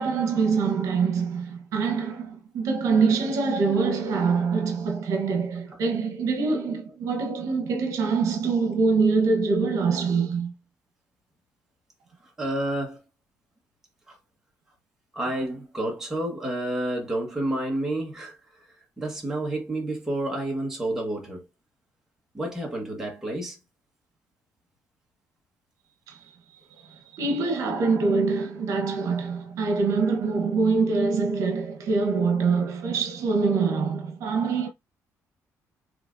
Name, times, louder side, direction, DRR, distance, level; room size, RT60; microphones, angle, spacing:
voice 1, 0.0-10.5 26.1-26.2 26.9-34.7, right 4 dB, 65° right, 1.1 m, -24 dB
voice 2, 12.2-13.0 14.1-14.2 15.1-18.7 19.0-21.4 22.3-23.6, right 1 dB, 5° right, 1.4 m, -30 dB
5.7 x 3.3 x 2.6 m
cardioid pair, 170°, 6 cm